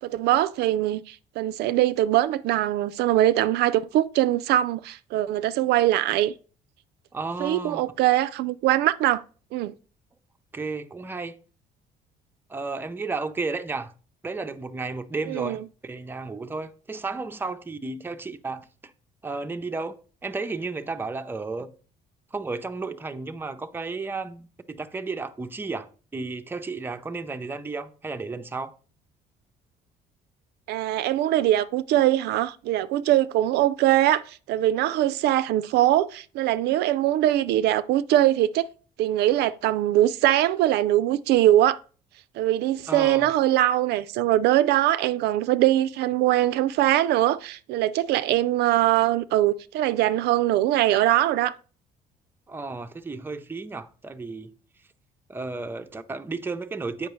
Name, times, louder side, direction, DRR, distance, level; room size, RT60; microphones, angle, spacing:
voice 1, 0.0-6.3 7.4-9.2 9.5-9.7 15.3-15.6 30.7-38.7 39.0-41.8 42.4-51.5, right 14 dB, 75° right, 0.4 m, -22 dB
voice 2, 7.1-7.8 10.5-11.4 12.5-13.9 14.2-18.7 19.2-20.0 20.2-21.7 22.3-28.7 42.9-43.3 52.5-54.5 55.3-57.1, right 3 dB, 10° right, 0.5 m, -33 dB
7.9 x 5.5 x 3.1 m
cardioid pair, 110°, 17 cm